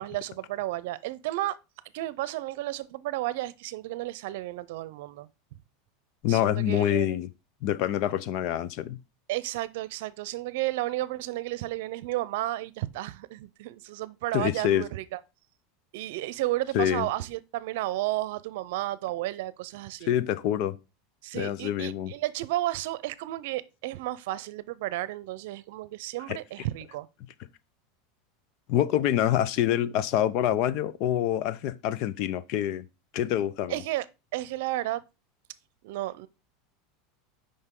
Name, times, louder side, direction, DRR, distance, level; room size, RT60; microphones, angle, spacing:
voice 1, 0.0-1.6 1.9-5.3 6.3-7.2 9.3-15.2 15.9-20.1 21.2-27.1 33.7-34.1 34.3-35.0 35.8-36.3, right 16 dB, 70° right, 0.6 m, -32 dB
voice 2, 6.2-7.3 7.6-9.0 14.3-14.8 16.7-17.1 20.0-20.8 21.3-22.1 26.3-26.4 28.7-32.8 33.1-33.8, left 11 dB, 55° left, 0.8 m, -26 dB
8.0 x 5.5 x 3.8 m
supercardioid pair, 135°, 0 cm